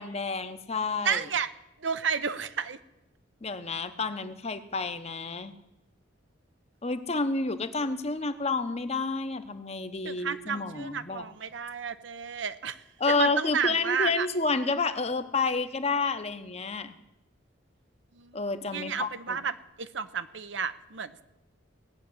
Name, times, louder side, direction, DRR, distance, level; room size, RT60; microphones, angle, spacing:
voice 1, 0.0-1.2 3.4-5.6 6.8-11.3 13.0-17.0 18.3-19.4, left 3 dB, 30° left, 9 dB, 0.9 m, -30 dB
voice 2, 1.0-1.5 1.8-2.8 10.0-14.3 18.1-18.4 18.7-21.2, right 6 dB, 65° right, 12 dB, 0.8 m, -32 dB
18.0 x 7.3 x 9.6 m, 0.90 s
head